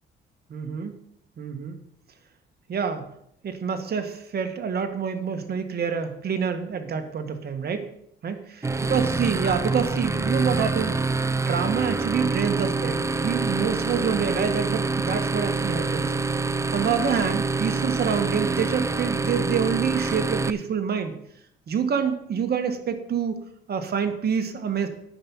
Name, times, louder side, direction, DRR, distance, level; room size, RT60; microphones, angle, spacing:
voice 1, 0.5-0.9 1.4-1.8 2.7-3.1 3.4-7.9 8.2-8.4 8.9-11.0 11.5-16.1 16.7-21.1 21.7-23.4 23.7-24.9, right 6 dB, 55° right, 7 dB, 1.6 m, -27 dB
sound 1, 8.6-20.5, right 3 dB, 15° right, 0.5 m, -26 dB
9.9 x 6.0 x 7.1 m, 0.73 s
cardioid pair, 90°, 20 cm